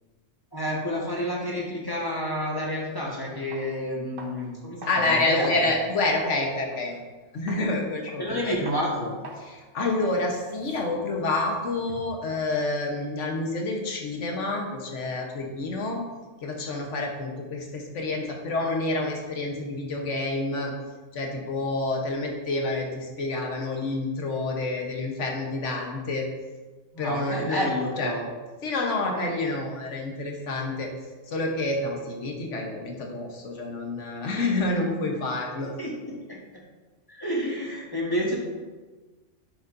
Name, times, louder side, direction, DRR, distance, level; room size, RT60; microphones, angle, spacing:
voice 1, 0.5-5.7 8.2-9.1 26.9-28.3 35.2-35.3 35.8-36.6 37.1-38.4, equal, 20° left, -4 dB, 1.4 m, -30 dB
sound 1, 2.9-3.0 3.5-3.7 4.2-4.5 4.8-6.3 6.7-6.9 7.5-7.7 8.1-8.4 8.7-8.9 9.2-9.5 9.8-10.0 10.3-12.2, right 2 dB, 50° right, 1.2 m, -43 dB
voice 2, 4.9-7.0 7.3-8.5 9.5-16.0 16.4-20.7 21.1-26.3 27.0-27.7 28.0-28.1 28.6-30.9 31.3-35.7, left 2 dB, 85° left, 1 dB, 1.4 m, -28 dB
9.2 x 6.8 x 2.6 m, 1.3 s
omnidirectional pair, 1.2 m